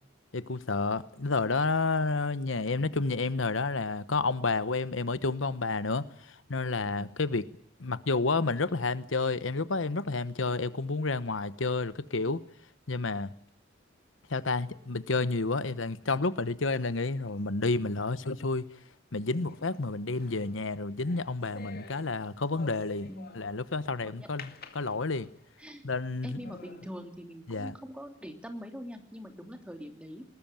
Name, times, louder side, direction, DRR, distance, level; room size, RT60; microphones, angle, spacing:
voice 1, 0.3-7.4 7.8-12.4 12.9-13.3 14.3-18.6 19.1-23.1 23.3-25.3 25.8-26.5 27.5-27.7, left 3 dB, 75° left, 15 dB, 1.1 m, -30 dB
sound 1, 19.3-23.7 24.4-25.5 26.0-26.1 26.4-26.9, left 4 dB, 50° left, 2.2 m, -50 dB
voice 2, 25.6-25.9 26.2-30.2, equal, 5° right, 5 dB, 3.0 m, -43 dB
20.5 x 20.0 x 9.0 m, 0.67 s
head